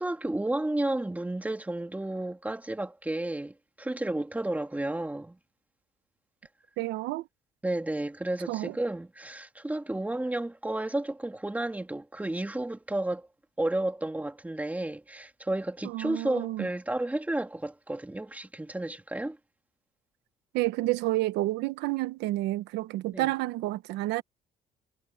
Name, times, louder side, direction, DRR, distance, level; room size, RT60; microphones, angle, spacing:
voice 1, 0.0-5.4 7.6-13.3 13.6-19.4 23.1-23.3, right 1 dB, 10° right, 2.8 m, -32 dB
voice 2, 6.8-7.3 8.5-8.8 15.8-16.7 20.5-24.2, right 17 dB, 90° right, 1.1 m, -30 dB
cardioid pair, 110°, 17 cm